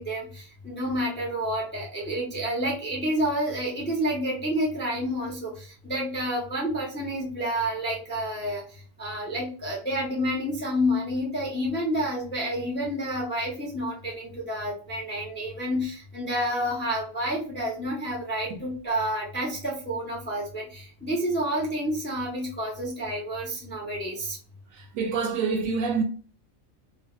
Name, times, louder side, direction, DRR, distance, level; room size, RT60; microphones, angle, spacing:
voice 1, 0.0-8.6 9.0-24.4, equal, 15° left, 0.4 m, -29 dB
voice 2, 24.8-26.0, right 5 dB, 75° right, 1.0 m, -26 dB
3.3 x 2.0 x 2.3 m
omnidirectional pair, 1.4 m